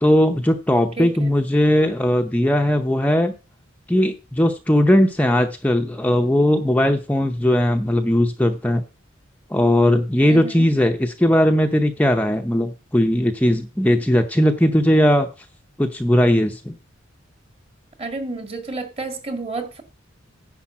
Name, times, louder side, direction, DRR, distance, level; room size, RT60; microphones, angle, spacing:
voice 1, 0.0-3.3 3.9-8.8 9.5-15.3 15.8-16.7, left 1 dB, 10° left, 0.6 m, -18 dB
voice 2, 1.0-1.3 10.2-10.7 18.0-19.8, right 3 dB, 30° right, 2.0 m, -30 dB
10.0 x 4.4 x 7.3 m
head